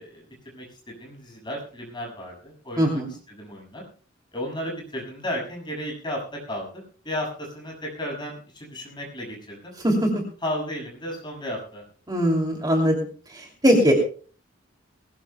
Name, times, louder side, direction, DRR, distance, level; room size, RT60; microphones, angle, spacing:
voice 1, 0.0-3.0 3.3-3.8 4.3-9.7 10.4-11.8, left 1 dB, 25° left, -1 dB, 6.4 m, -34 dB
voice 2, 2.8-3.1 9.8-10.2 12.1-13.0 13.3-13.9, equal, 20° right, 0 dB, 2.7 m, -20 dB
21.5 x 18.5 x 2.3 m, 0.40 s
head